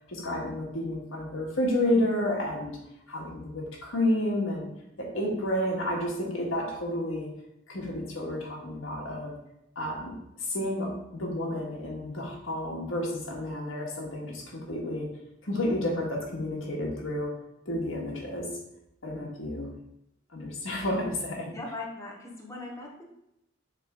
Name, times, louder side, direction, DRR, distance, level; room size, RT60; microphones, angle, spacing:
voice 1, 0.1-2.8 3.1-4.7 5.0-7.3 7.7-9.3 9.7-15.1 15.4-17.4 17.6-18.5 19.0-19.7 20.3-21.5, left 1 dB, 85° left, -1 dB, 1.7 m, -30 dB
voice 2, 21.5-23.0, left 2 dB, 15° left, -2 dB, 0.9 m, -39 dB
7.1 x 3.8 x 3.7 m, 0.83 s
head